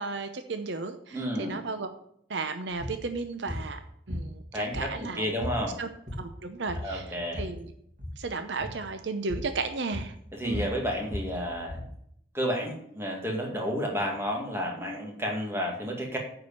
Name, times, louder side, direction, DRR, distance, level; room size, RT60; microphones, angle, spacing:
voice 1, 0.0-1.9 2.3-3.8 4.1-5.3 5.8-5.9 6.2-7.7 8.2-10.1 10.4-10.7, right 3 dB, 65° right, 8 dB, 0.8 m, -34 dB
voice 2, 1.1-1.6 4.5-5.8 6.8-7.5 10.3-11.8 12.3-16.2, equal, 15° right, 0 dB, 2.2 m, -31 dB
sound 1, 2.8-3.0 3.5-3.7 4.1-5.1 5.4-5.6 5.9-6.4 6.7-7.6 7.9-8.2 8.6-8.8 9.3-9.6 9.9-11.9, left 1 dB, 40° right, 2.7 m, -36 dB
9.6 x 4.9 x 7.2 m, 0.70 s
head